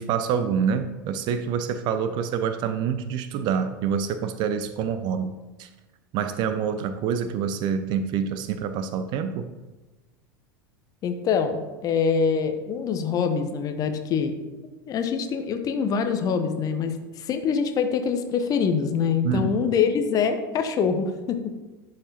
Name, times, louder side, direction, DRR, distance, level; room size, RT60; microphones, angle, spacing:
voice 1, 0.0-5.7 6.1-9.5 19.2-19.5, right 7 dB, 40° right, 10 dB, 0.5 m, -26 dB
voice 2, 11.0-14.4 14.9-21.6, left 6 dB, 35° left, 7 dB, 0.8 m, -24 dB
11.0 x 5.0 x 2.9 m, 1.2 s
figure-of-eight pair, 80°, 11 cm